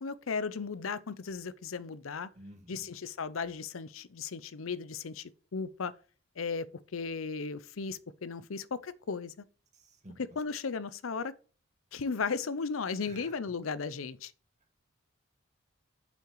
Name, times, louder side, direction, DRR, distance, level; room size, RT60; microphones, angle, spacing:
voice 1, 0.0-2.3 2.7-5.9 6.4-9.3 10.2-11.3 11.9-14.3, left 5 dB, 90° left, 0.6 m, -36 dB
voice 2, 2.3-2.9 9.8-10.2 13.0-13.4, right 1 dB, 35° right, 1.7 m, -51 dB
7.7 x 5.8 x 4.6 m
head